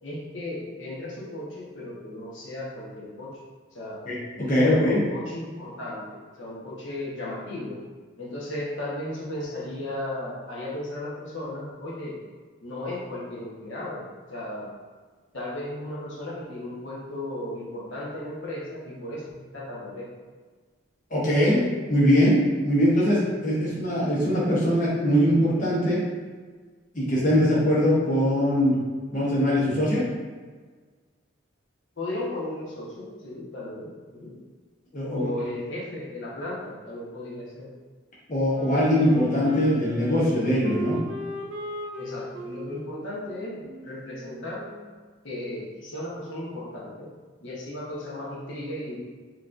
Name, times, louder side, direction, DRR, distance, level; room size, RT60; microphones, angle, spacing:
voice 1, 0.0-3.3 3.7-4.0 4.4-7.8 8.2-12.2 12.6-14.7 15.3-20.1 23.6-23.8 32.0-34.3 35.1-37.7 42.0-44.6 45.2-47.1 47.4-49.0, left 1 dB, 70° left, -6 dB, 1.1 m, -35 dB
voice 2, 4.1-5.0 21.1-21.6 21.9-26.0 26.9-28.8 29.1-30.0 34.9-35.3 38.3-41.0, equal, 40° left, -7 dB, 1.0 m, -22 dB
Wind instrument woodwind instrument, 38.5-45.1, right 1 dB, 80° right, 0.7 m, -38 dB
5.9 x 3.1 x 2.5 m, 1.5 s
head